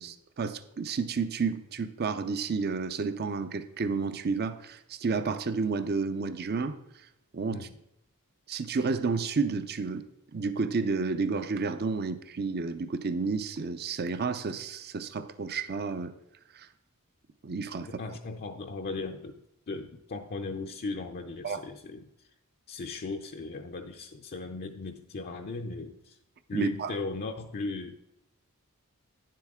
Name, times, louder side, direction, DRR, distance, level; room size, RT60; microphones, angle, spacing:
voice 1, 0.0-6.8 7.3-7.7 8.5-10.0 10.3-16.1 16.5-16.7 17.4-17.9 21.4-21.6 26.5-26.9, right 4 dB, 45° right, 0.6 m, -31 dB
voice 2, 17.8-22.3 22.7-26.2 26.5-28.0, left 3 dB, 45° left, 0.5 m, -37 dB
9.8 x 7.5 x 3.6 m
head